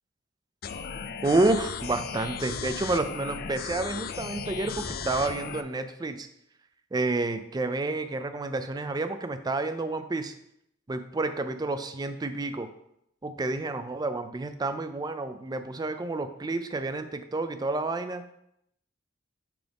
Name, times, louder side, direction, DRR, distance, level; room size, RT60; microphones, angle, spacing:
sound 1, 0.6-5.6, left 6 dB, 50° left, 0.4 m, -36 dB
voice 1, 1.2-6.3 6.9-10.3 10.9-12.7 13.2-18.2, right 2 dB, 20° right, 10 dB, 0.4 m, -29 dB
5.9 x 5.0 x 3.5 m, 0.78 s
head